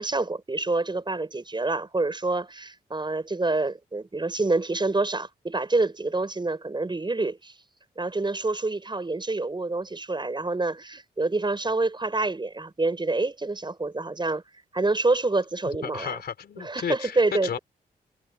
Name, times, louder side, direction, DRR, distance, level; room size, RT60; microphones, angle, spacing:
voice 1, 0.0-7.5 8.0-14.4 14.7-16.2 16.6-17.6, right 3 dB, 25° right, 6.2 m, -27 dB
voice 2, 15.8-17.6, left 7 dB, 70° left, 3.8 m, -33 dB
cardioid pair, 55°, 17 cm